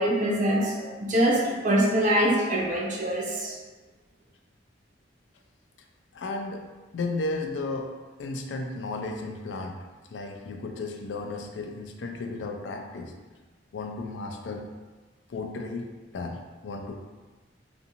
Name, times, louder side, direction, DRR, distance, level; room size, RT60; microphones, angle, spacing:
voice 1, 0.0-3.6, right 1 dB, 45° right, -4 dB, 0.5 m, -24 dB
voice 2, 6.1-6.7 6.9-7.9 8.2-9.8 10.1-13.1 13.7-14.7 15.3-15.9 16.1-16.9, left 3 dB, 80° left, 3 dB, 0.4 m, -34 dB
2.5 x 2.5 x 2.8 m, 1.3 s
head